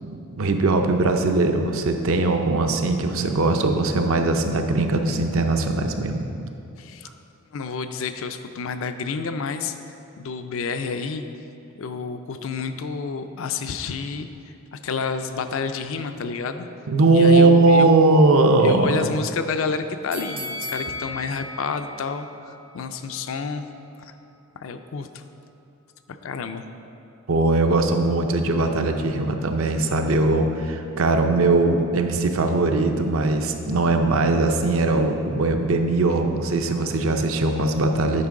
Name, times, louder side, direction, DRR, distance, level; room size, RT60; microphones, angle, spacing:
voice 1, 0.0-6.2 16.9-19.1 27.3-38.3, right 2 dB, 65° right, 5 dB, 0.5 m, -20 dB
voice 2, 6.8-7.1 7.5-9.8 10.2-11.2 11.8-16.7 17.1-17.9 18.6-23.7 24.0-24.1 24.5-25.2 26.2-26.6, left 5 dB, 65° left, 8 dB, 0.4 m, -30 dB
sound 1, 20.1-23.2 23.6-23.7, left 1 dB, 10° right, 0.4 m, -36 dB
9.5 x 5.2 x 3.7 m, 2.7 s
head